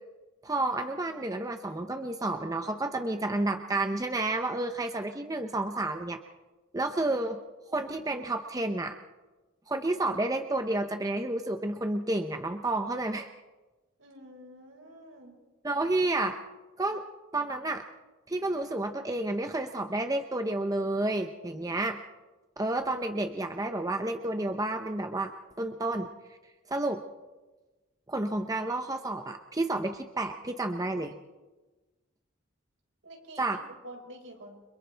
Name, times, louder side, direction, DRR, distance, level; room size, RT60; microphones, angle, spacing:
voice 1, 0.4-6.2 6.7-7.4 7.7-9.0 9.7-13.3 15.6-16.4 16.8-17.0 17.3-17.8 18.3-22.0 22.6-25.3 25.6-26.1 26.7-27.0 28.1-31.1 33.4-33.6, right 2 dB, 15° right, 6 dB, 0.7 m, -30 dB
voice 2, 14.0-15.4 33.0-34.6, right 1 dB, 75° right, 0 dB, 5.4 m, -48 dB
30.0 x 26.0 x 3.4 m, 1.2 s
head